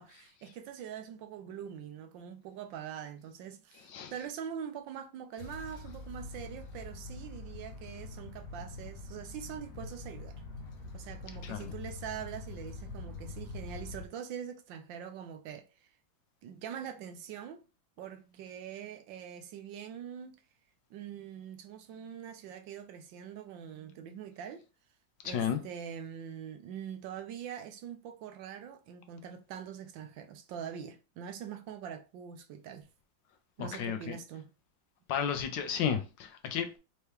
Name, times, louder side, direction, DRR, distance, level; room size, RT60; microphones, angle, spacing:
voice 1, 0.0-10.4 10.9-15.7 16.4-17.6 18.0-20.4 20.9-24.6 25.2-32.9 33.6-34.5, right 8 dB, 75° right, 1.3 m, -43 dB
sound 1, 5.4-14.1, left 3 dB, 60° left, 1.0 m, -44 dB
voice 2, 11.4-11.7 25.2-25.6 33.6-34.1 35.1-36.8, left 8 dB, 75° left, 1.3 m, -33 dB
4.5 x 2.9 x 3.3 m
omnidirectional pair, 2.1 m